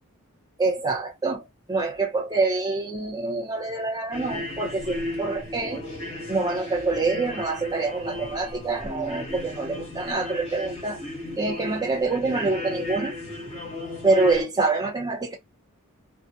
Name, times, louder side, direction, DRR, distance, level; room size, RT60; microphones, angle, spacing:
voice 1, 0.6-1.4 1.7-5.8 6.3-11.0 11.4-13.2 14.0-15.3, right 3 dB, 20° right, 0.9 m, -26 dB
sound 1, 4.1-14.4, left 1 dB, 30° left, 1.2 m, -35 dB
2.4 x 2.3 x 2.7 m
head